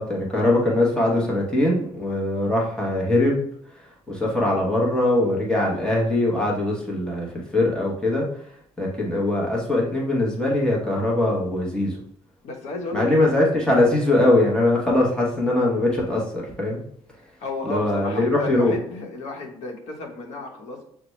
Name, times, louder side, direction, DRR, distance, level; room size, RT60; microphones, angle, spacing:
voice 1, 0.0-3.5 3.8-8.4 8.8-12.0 12.9-16.8 17.7-18.7, left 2 dB, 5° left, -4 dB, 1.0 m, -22 dB
voice 2, 12.4-13.4 17.4-20.9, left 2 dB, 70° left, 1 dB, 1.0 m, -33 dB
5.8 x 2.2 x 3.0 m, 0.65 s
cardioid pair, 145°, 12 cm